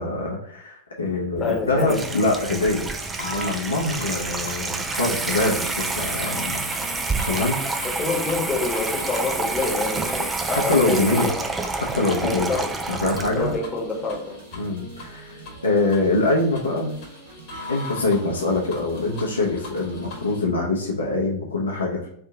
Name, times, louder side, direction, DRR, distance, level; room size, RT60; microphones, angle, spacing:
voice 1, 0.0-2.9 3.2-6.6 7.2-7.9 10.5-11.3 11.9-12.5 12.9-13.5 14.5-15.3 15.6-17.0 17.7-22.1, left 2 dB, 75° left, -2 dB, 0.9 m, -24 dB
voice 2, 1.4-2.0 7.8-11.5 12.2-12.7 13.3-14.4, left 3 dB, 10° left, -3 dB, 1.3 m, -27 dB
Water tap faucet / Sink (filling or washing), 1.4-13.6, right 3 dB, 15° right, 0.4 m, -28 dB
sound 1, 2.8-20.4, left 3 dB, 45° left, 1.3 m, -42 dB
sound 2, 5.3-20.4, right 2 dB, 65° right, 0.8 m, -44 dB
3.3 x 2.8 x 3.8 m, 0.68 s
figure-of-eight pair, 90°, 0 cm